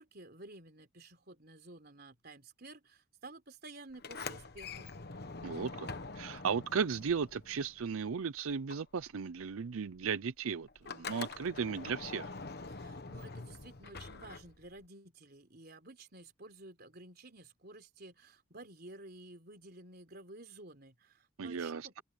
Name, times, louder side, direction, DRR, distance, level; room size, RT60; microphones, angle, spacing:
voice 1, 0.0-4.9 12.7-22.0, right 2 dB, 45° right, 3.7 m, -52 dB
Sliding door, 3.9-8.2 8.5-14.9, left 4 dB, 50° left, 1.2 m, -45 dB
voice 2, 5.4-5.9 6.2-12.3 21.4-22.0, right 6 dB, 80° right, 0.5 m, -36 dB
head